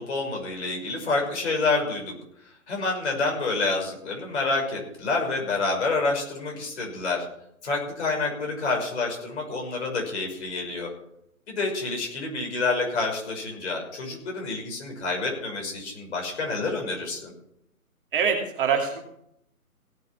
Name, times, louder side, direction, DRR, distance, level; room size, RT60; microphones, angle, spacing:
voice 1, 0.0-2.1 2.7-7.3 7.6-10.9 11.5-17.3, left 3 dB, 45° left, 1 dB, 6.0 m, -28 dB
voice 2, 18.1-19.0, right 6 dB, 35° right, 2 dB, 2.5 m, -24 dB
17.5 x 8.3 x 5.8 m, 0.73 s
hypercardioid pair, 165°, 45 cm